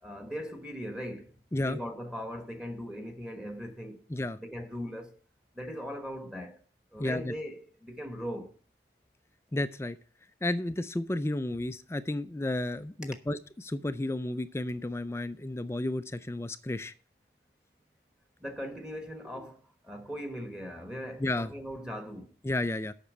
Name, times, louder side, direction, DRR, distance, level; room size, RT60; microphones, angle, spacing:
voice 1, 0.0-4.0 4.4-5.2 5.5-6.6 6.9-8.5 18.4-19.6 19.8-22.3, equal, 5° right, 1.2 m, -39 dB
voice 2, 7.0-7.3 9.5-10.0 10.4-16.9 19.4-19.5 21.2-21.5 22.4-22.9, left 1 dB, 15° left, 0.4 m, -32 dB
8.4 x 5.9 x 7.4 m
head